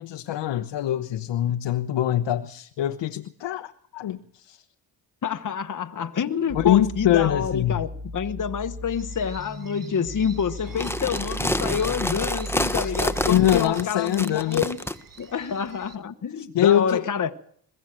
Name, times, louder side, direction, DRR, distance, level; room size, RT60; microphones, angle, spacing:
voice 1, 0.0-4.6 6.5-7.8 12.8-12.9 13.2-14.6 16.4-17.0, left 12 dB, 80° left, 1.1 m, -23 dB
voice 2, 5.2-14.8 15.2-17.3, left 7 dB, 45° left, 1.2 m, -27 dB
sound 1, 6.5-13.6, equal, 30° right, 3.0 m, -36 dB
sound 2, 9.0-16.0, right 6 dB, 50° right, 2.1 m, -50 dB
sound 3, 10.7-15.0, left 1 dB, 5° left, 1.3 m, -28 dB
22.0 x 15.5 x 7.6 m
cardioid pair, 60°, 43 cm